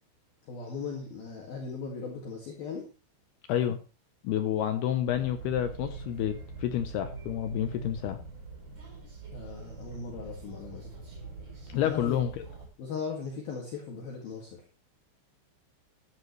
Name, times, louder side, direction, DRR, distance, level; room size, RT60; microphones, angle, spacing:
voice 1, 0.5-2.8 9.3-10.9 11.8-12.2 12.8-14.6, left 5 dB, 55° left, -1 dB, 3.6 m, -38 dB
voice 2, 4.2-8.2 11.7-12.4, left 10 dB, 80° left, 8 dB, 2.3 m, -29 dB
sound 1, 5.1-12.7, right 3 dB, 25° right, 4.9 m, -43 dB
14.5 x 12.0 x 3.2 m, 0.32 s
omnidirectional pair, 5.7 m